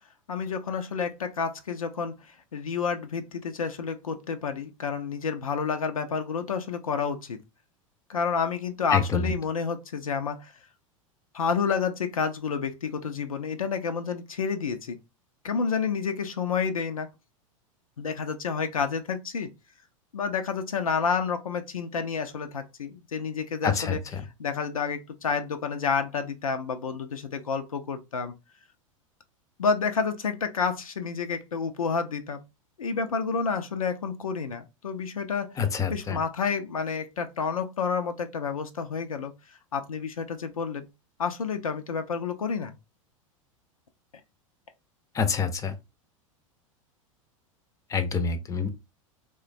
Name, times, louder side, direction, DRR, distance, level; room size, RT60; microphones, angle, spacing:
voice 1, 0.3-7.4 8.1-10.5 11.3-15.0 15.4-17.1 18.0-19.5 20.1-28.3 29.6-32.4 32.8-35.6 35.9-39.3 39.7-40.9 41.2-42.7, left 5 dB, 90° left, 0.4 m, -29 dB
voice 2, 35.6-36.2 45.2-45.7 47.9-48.7, left 6 dB, 20° left, 0.5 m, -26 dB
3.0 x 2.2 x 2.4 m
hypercardioid pair, 90°, 17 cm